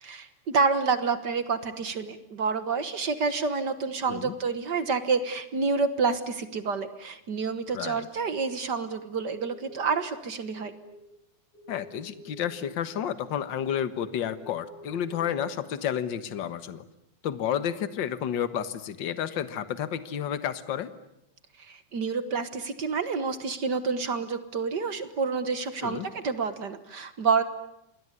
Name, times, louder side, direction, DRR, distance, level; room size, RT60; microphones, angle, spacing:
voice 1, 0.0-10.7 21.7-27.4, right 4 dB, 50° right, 11 dB, 1.4 m, -28 dB
voice 2, 7.7-8.1 11.7-16.8 17.2-20.9 25.8-26.1, left 9 dB, 50° left, 13 dB, 1.6 m, -31 dB
sound 1, 9.3-10.0 10.4-11.0 11.5-12.5 13.6-15.3, equal, 85° left, 9.2 m, -49 dB
27.5 x 21.0 x 9.8 m, 0.83 s
omnidirectional pair, 3.4 m